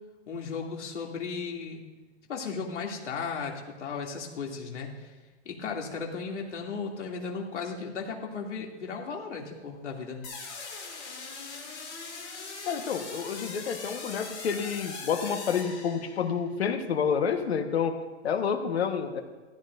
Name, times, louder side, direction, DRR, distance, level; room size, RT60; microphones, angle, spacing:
voice 1, 0.3-1.8 2.3-5.1 5.4-10.2, left 5 dB, 80° left, 0 dB, 2.8 m, -35 dB
sound 1, 10.2-16.4, left 4 dB, 25° left, 2.3 m, -41 dB
voice 2, 12.6-18.0 18.2-19.2, left 7 dB, 65° left, 6 dB, 1.4 m, -29 dB
16.5 x 14.5 x 2.6 m, 1.2 s
hypercardioid pair, 175°, 35 cm